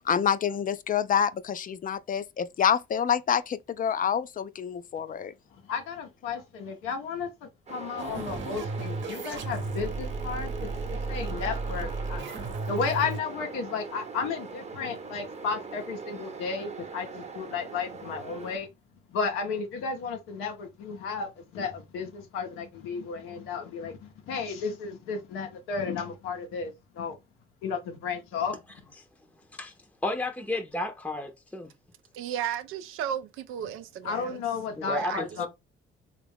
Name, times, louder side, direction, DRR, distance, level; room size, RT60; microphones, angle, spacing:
voice 1, 0.1-5.3, left 8 dB, 40° left, 0.4 m, -27 dB
voice 2, 5.6-7.3 7.7-12.2 12.7-18.7 19.1-27.1 27.6-28.9 34.0-35.5, left 5 dB, 90° left, 0.8 m, -33 dB
sound 1, 7.7-18.6, right 4 dB, 30° right, 0.9 m, -41 dB
sound 2, 8.0-13.2, right 3 dB, 65° right, 0.9 m, -34 dB
voice 3, 30.0-31.7 34.8-35.5, left 2 dB, 5° left, 0.7 m, -32 dB
voice 4, 32.1-34.4 34.8-35.2, right 9 dB, 80° right, 0.5 m, -34 dB
3.4 x 2.4 x 3.4 m
supercardioid pair, 65°, 21 cm